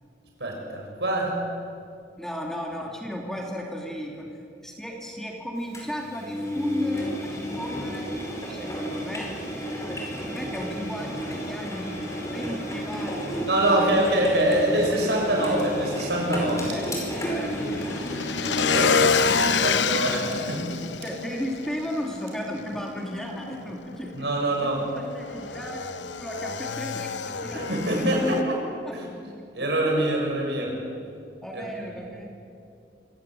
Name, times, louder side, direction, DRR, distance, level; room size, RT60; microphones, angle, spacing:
voice 1, 0.4-1.4 13.5-16.7 18.6-20.6 24.1-24.8 27.5-28.6 28.9-29.1 29.5-30.7 31.5-31.9, right 1 dB, 70° right, 0 dB, 6.8 m, -25 dB
voice 2, 2.2-4.3 4.6-8.1 8.5-9.3 9.9-13.4 13.7-14.0 16.7-16.8 17.3-17.9 21.0-24.3 24.6-28.2 28.9-29.0 29.4-29.7 31.4-32.3, equal, 5° left, 0 dB, 2.7 m, -35 dB
Engine, 5.7-19.2, equal, 20° left, 5.3 m, -32 dB
Motorcycle / Engine, 11.0-28.4, left 5 dB, 90° left, 0.9 m, -30 dB
sound 1, 15.6-15.8 16.7-16.9 17.3-17.4 17.8-17.9 18.5-18.8 19.5-19.7 20.2-20.5 21.0-21.2 22.3-22.6, right 6 dB, 90° right, 4.3 m, -45 dB
25.5 x 16.5 x 9.1 m, 2.4 s
head